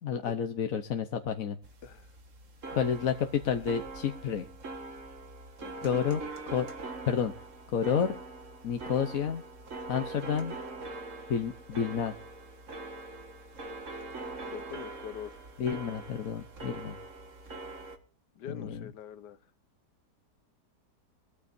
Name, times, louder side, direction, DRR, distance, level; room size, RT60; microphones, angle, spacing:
voice 1, 0.0-1.6 2.7-4.4 5.8-6.7 7.1-7.3 7.7-8.2 8.6-9.4 9.9-10.5 11.3-12.1 15.6-17.0 18.5-18.9, left 7 dB, 60° left, 6 dB, 1.3 m, -30 dB
sound 1, 1.6-18.0, right 3 dB, 50° right, 2.0 m, -43 dB
voice 2, 5.6-6.2 14.5-15.4 18.4-19.4, left 9 dB, 85° left, 13 dB, 1.5 m, -44 dB
22.5 x 13.5 x 2.7 m, 0.39 s
omnidirectional pair, 1.8 m